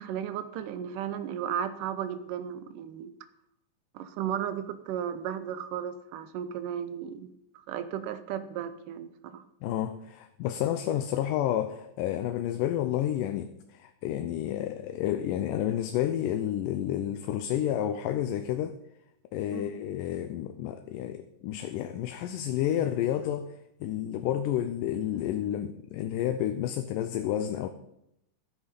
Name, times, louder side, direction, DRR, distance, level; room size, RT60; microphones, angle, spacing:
voice 1, 0.0-3.1 3.9-7.3 7.5-9.4 19.5-19.8, right 9 dB, 85° right, 12 dB, 2.4 m, -35 dB
voice 2, 9.6-18.8 19.3-23.5 23.8-27.7, left 11 dB, 85° left, 8 dB, 2.3 m, -30 dB
14.0 x 8.6 x 5.3 m, 0.82 s
omnidirectional pair, 3.7 m